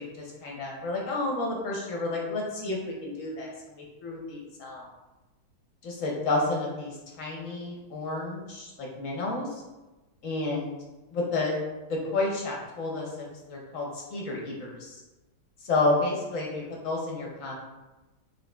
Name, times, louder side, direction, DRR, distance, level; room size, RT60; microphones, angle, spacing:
voice 1, 0.0-3.5 3.8-4.8 5.8-9.5 10.2-10.7 11.1-11.6 11.9-15.0 15.6-17.5, left 2 dB, 60° left, -2 dB, 0.9 m, -30 dB
5.0 x 3.1 x 2.2 m, 1.1 s
omnidirectional pair, 1.9 m